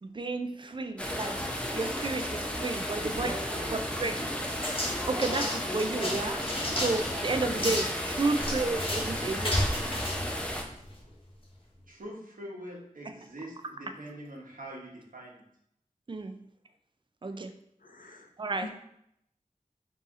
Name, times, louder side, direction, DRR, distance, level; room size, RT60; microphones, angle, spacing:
voice 1, 0.0-3.3 3.7-4.2 5.1-6.4 6.7-9.8 16.1-16.4 17.2-17.5 18.4-18.7, right 3 dB, 35° right, 7 dB, 0.4 m, -32 dB
sound 1, 1.0-10.6, equal, 10° left, 0.6 m, -34 dB
voice 2, 3.0-4.3 6.7-6.9 11.9-15.4, right 1 dB, 80° right, -4 dB, 1.1 m, -43 dB
sound 2, 4.5-11.1, left 1 dB, 40° left, 1.0 m, -33 dB
voice 3, 17.8-18.7, left 3 dB, 75° left, 4 dB, 0.6 m, -46 dB
3.9 x 2.8 x 3.6 m, 0.76 s
wide cardioid pair, 50°, 14 cm